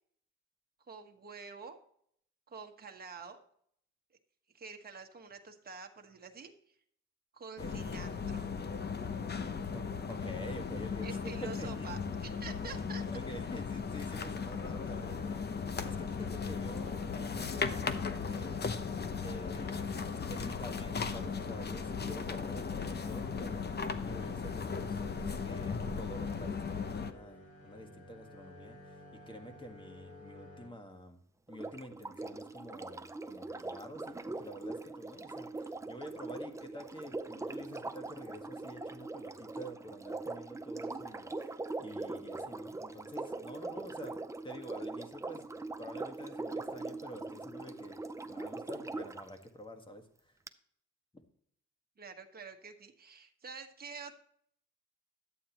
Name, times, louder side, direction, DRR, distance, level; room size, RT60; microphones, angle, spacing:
voice 1, 0.9-1.8 2.5-3.4 4.5-6.7 7.3-8.5 11.0-13.0 52.0-54.2, right 5 dB, 30° right, 3 dB, 1.4 m, -47 dB
sound 1, 7.6-27.1, left 5 dB, 35° left, 0.8 m, -37 dB
voice 2, 10.1-11.9 12.6-12.7 13.1-15.4 15.9-18.6 19.1-19.9 20.2-31.2 31.5-41.5 41.8-44.1 44.4-45.5 45.8-48.0 48.2-50.3, equal, 15° left, 6 dB, 1.5 m, -48 dB
sound 2, 14.9-30.7, left 2 dB, 80° left, 3.2 m, -53 dB
Sink (filling or washing), 31.5-49.3 50.5-50.6, right 3 dB, 10° right, 0.5 m, -41 dB
11.5 x 8.6 x 3.0 m, 0.67 s
cardioid pair, 90°, 30 cm